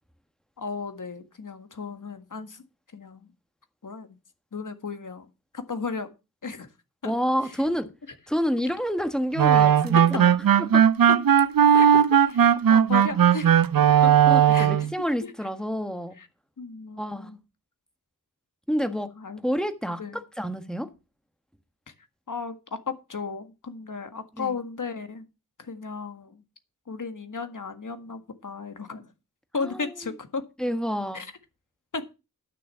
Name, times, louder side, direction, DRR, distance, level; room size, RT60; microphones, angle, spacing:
voice 1, 0.6-2.6 2.9-3.2 3.8-4.1 4.5-5.3 5.5-6.1 6.4-6.7 7.0-7.1 10.0-10.1 11.7-12.0 12.7-13.5 14.0-14.1 14.5-14.9 15.2-15.3 16.2-16.3 16.6-17.4 19.2-19.4 20.0-20.2 22.3-25.3 25.6-26.4 26.9-29.1 29.5-30.4 31.1-31.3 31.9-32.1, left 4 dB, 60° left, 1.8 m, -34 dB
voice 2, 7.0-7.9 8.3-10.3 10.6-10.8 14.3-16.2 17.0-17.3 18.7-19.1 19.4-20.9 24.4-24.6 29.6-30.1 30.6-31.2, equal, ahead, 1.4 m, -29 dB
sound 1, 9.4-14.9, right 9 dB, 75° right, 0.6 m, -18 dB
11.5 x 6.7 x 5.7 m
wide cardioid pair, 95°, 35 cm